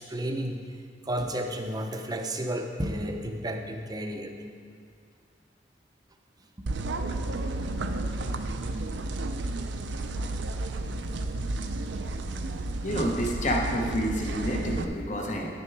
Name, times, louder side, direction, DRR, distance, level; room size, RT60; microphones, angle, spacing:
voice 1, 0.0-4.4 6.6-6.7, right 1 dB, 20° right, 4 dB, 0.6 m, -32 dB
sound 1, 6.7-14.8, right 2 dB, 70° right, 0.5 m, -32 dB
voice 2, 12.8-15.5, equal, 40° left, 0 dB, 1.0 m, -29 dB
10.0 x 6.8 x 4.7 m, 2.2 s
head